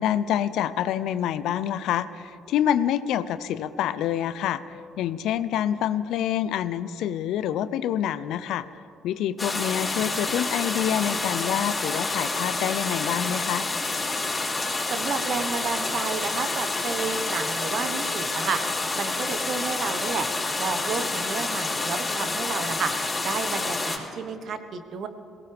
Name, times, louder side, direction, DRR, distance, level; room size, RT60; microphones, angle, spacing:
voice 1, 0.0-8.6 9.0-13.6, left 10 dB, 70° left, 14 dB, 0.6 m, -27 dB
sound 1, 9.4-24.0, left 3 dB, 25° left, 4.6 m, -28 dB
voice 2, 14.9-18.6 19.0-20.3 20.6-22.9 23.2-25.1, right 5 dB, 60° right, 9 dB, 1.3 m, -31 dB
22.5 x 17.0 x 3.5 m, 2.5 s
hypercardioid pair, 50°, 0 cm